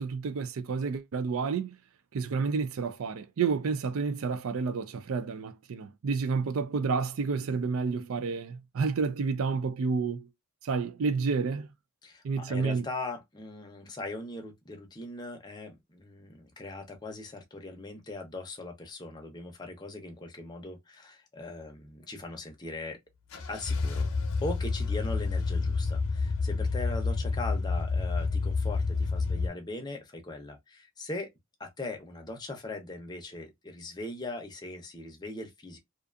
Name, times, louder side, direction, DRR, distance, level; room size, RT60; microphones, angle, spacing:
voice 1, 0.0-1.8 2.1-10.3 10.6-11.7 12.2-12.8, right 5 dB, 75° right, 0.4 m, -30 dB
voice 2, 12.0-23.0 23.5-24.1 24.4-31.3 31.6-35.8, left 2 dB, 20° left, 0.6 m, -40 dB
sound 1, 23.3-29.5, left 4 dB, 90° left, 0.6 m, -29 dB
2.5 x 2.4 x 2.4 m
head